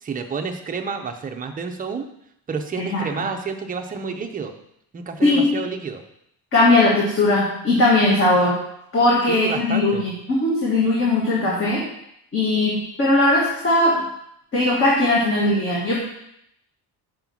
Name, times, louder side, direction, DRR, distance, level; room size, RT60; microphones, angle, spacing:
voice 1, 0.0-2.1 2.5-4.5 4.9-6.0 9.3-10.1, right 5 dB, 20° right, 4 dB, 0.5 m, -29 dB
voice 2, 5.2-5.5 6.5-8.6 8.9-11.8 12.3-14.0 14.5-16.0, left 2 dB, 30° left, -5 dB, 1.6 m, -19 dB
5.4 x 5.0 x 6.0 m, 0.77 s
cardioid pair, 170°, 40 cm